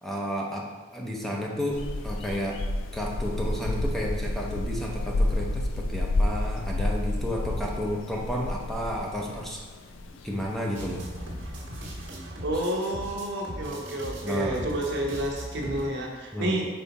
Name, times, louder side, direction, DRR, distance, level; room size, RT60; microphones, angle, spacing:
voice 1, 0.0-2.6 2.9-9.6 10.2-11.0 14.2-14.6 16.3-16.6, equal, ahead, -2 dB, 0.7 m, -32 dB
sound 1, 1.7-12.1, left 1 dB, 75° left, 0.5 m, -30 dB
sound 2, 10.7-15.9, right 1 dB, 85° right, 1.6 m, -39 dB
voice 2, 12.4-16.7, right 1 dB, 65° right, -1 dB, 1.1 m, -30 dB
5.6 x 4.8 x 4.1 m, 1.3 s
head